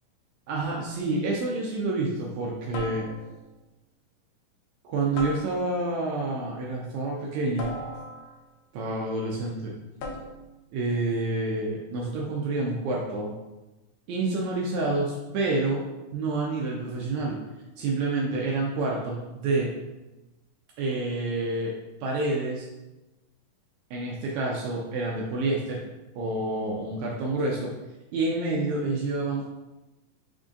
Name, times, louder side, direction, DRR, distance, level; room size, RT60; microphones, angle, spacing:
voice 1, 0.5-3.1 4.8-7.8 8.7-9.7 10.7-13.3 14.1-15.8 16.1-17.4 17.8-19.7 20.8-21.7 22.0-22.7 23.9-25.8 26.2-27.7 28.1-29.5, right 2 dB, 90° right, -2 dB, 1.6 m, -28 dB
sound 1, 0.9-1.3 2.7-3.5 5.2-6.0 7.6-8.5 10.0-10.6, left 1 dB, 75° left, 1.8 m, -38 dB
5.4 x 3.7 x 2.5 m, 1.0 s
omnidirectional pair, 4.0 m